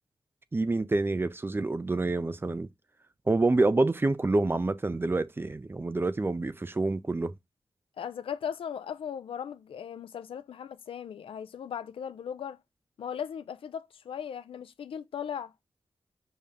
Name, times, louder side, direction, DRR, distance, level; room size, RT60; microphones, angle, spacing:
voice 1, 0.5-2.7 3.3-7.3, right 2 dB, 25° right, 0.4 m, -27 dB
voice 2, 8.0-12.6 13.0-15.5, left 8 dB, 85° left, 0.3 m, -38 dB
5.3 x 2.1 x 3.5 m
cardioid pair, 55°, 9 cm